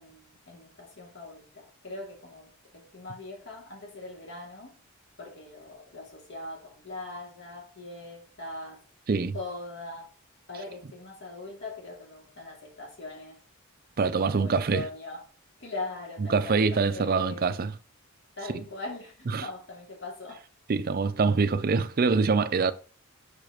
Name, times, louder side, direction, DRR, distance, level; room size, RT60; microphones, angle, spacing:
voice 1, 0.0-4.7 5.2-8.8 9.3-10.1 10.5-13.4 14.2-15.2 15.6-17.5 18.4-20.4, left 2 dB, 55° left, 2.5 m, -41 dB
voice 2, 14.0-14.8 16.3-17.7 19.3-19.5 20.7-22.7, right 4 dB, 40° right, 0.4 m, -24 dB
6.8 x 4.9 x 3.0 m
head